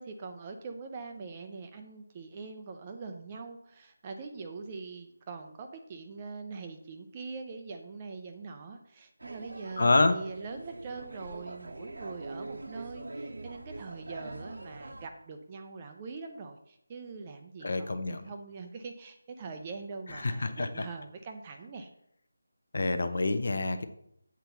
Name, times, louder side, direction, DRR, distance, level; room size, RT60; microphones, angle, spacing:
voice 1, 0.0-21.9, right 4 dB, 15° right, 5 dB, 0.4 m, -43 dB
sound 1, 9.2-15.1, right 2 dB, 65° right, 0.8 m, -43 dB
voice 2, 9.8-10.2 17.6-18.3 20.2-20.7 22.7-23.8, left 2 dB, 45° left, 9 dB, 0.8 m, -27 dB
7.9 x 4.5 x 6.9 m, 0.71 s
figure-of-eight pair, 180°, 0 cm